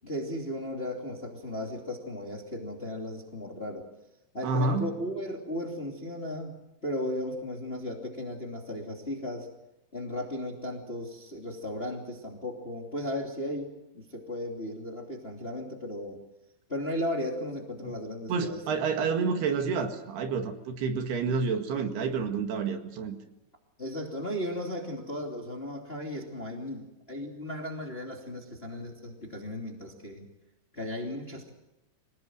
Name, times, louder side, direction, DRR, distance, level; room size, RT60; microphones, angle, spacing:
voice 1, 0.0-3.9 4.3-6.5 6.8-9.5 9.9-16.2 16.7-18.6 23.8-30.3 30.7-31.5, left 1 dB, 20° left, 1 dB, 2.3 m, -36 dB
voice 2, 4.4-4.9 17.8-17.9 18.3-23.2, right 4 dB, 70° right, 5 dB, 3.9 m, -29 dB
26.0 x 19.0 x 7.7 m, 0.95 s
omnidirectional pair, 4.9 m